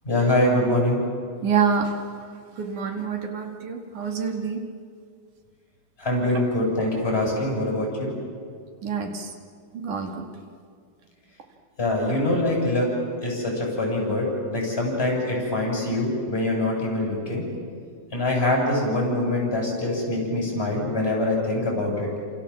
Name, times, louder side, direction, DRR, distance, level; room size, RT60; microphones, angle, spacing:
voice 1, 0.0-1.0 6.0-8.1 11.8-12.9 13.2-17.4 18.1-22.1, left 1 dB, 15° left, -1 dB, 8.3 m, -24 dB
voice 2, 1.4-4.6 6.3-6.4 8.8-9.3 9.7-10.3, right 6 dB, 75° right, 4 dB, 3.5 m, -27 dB
28.5 x 28.0 x 7.5 m, 2.2 s
omnidirectional pair, 3.5 m